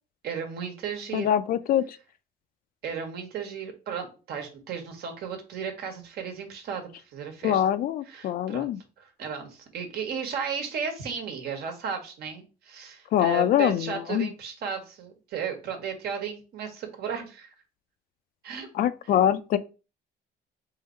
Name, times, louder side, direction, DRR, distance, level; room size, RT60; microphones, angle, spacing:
voice 1, 0.2-1.3 2.8-7.6 8.1-8.7 9.0-17.5 18.4-18.7, right 6 dB, 70° right, 1.2 m, -34 dB
voice 2, 1.1-2.0 7.4-8.8 13.1-14.3 18.7-19.6, left 10 dB, 60° left, 0.4 m, -24 dB
3.8 x 2.7 x 4.3 m
cardioid pair, 110°, 17 cm